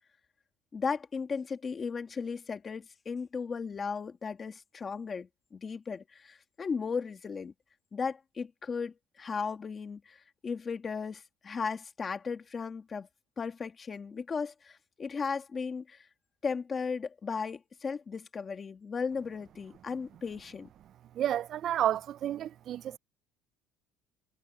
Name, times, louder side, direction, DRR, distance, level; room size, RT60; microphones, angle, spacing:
voice 1, 0.7-7.5 7.9-13.1 13.4-16.1 16.4-20.7, left 5 dB, 20° left, 1.8 m, -36 dB
voice 2, 21.1-23.0, right 11 dB, 40° right, 0.3 m, -31 dB
cardioid pair, 165°, 0 cm